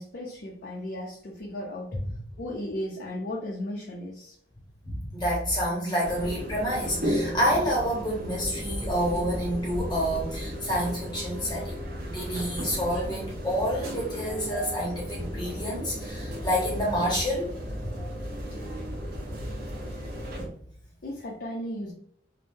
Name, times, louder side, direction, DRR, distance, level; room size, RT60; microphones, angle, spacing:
voice 1, 0.0-2.0 2.4-4.4 14.2-14.6 21.0-21.9, left 1 dB, 55° left, -3 dB, 0.5 m, -36 dB
voice 2, 4.8-17.5 19.3-19.5, equal, 25° left, -3 dB, 0.8 m, -28 dB
sound 1, 6.0-20.5, equal, 55° right, 0.8 m, -34 dB
3.5 x 2.1 x 2.6 m, 0.63 s
head